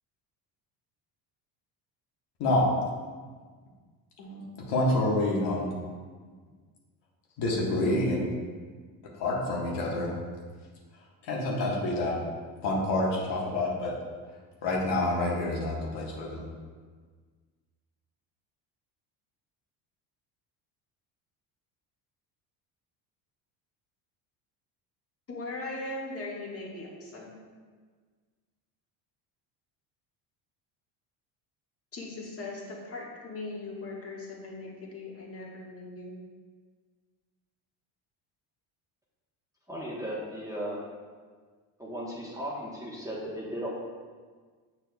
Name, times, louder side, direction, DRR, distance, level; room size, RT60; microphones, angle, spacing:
voice 1, 4.2-5.8 7.4-8.3 9.1-10.1 11.2-12.2 12.6-13.9 14.6-16.5, left 1 dB, 65° left, -3 dB, 1.5 m, -28 dB
voice 2, 25.3-27.3 31.9-36.2, left 2 dB, 30° left, -3 dB, 1.6 m, -39 dB
voice 3, 39.7-40.8 41.8-43.7, equal, 5° right, -5 dB, 1.2 m, -36 dB
7.1 x 5.8 x 2.3 m, 1.5 s
supercardioid pair, 100°, 46 cm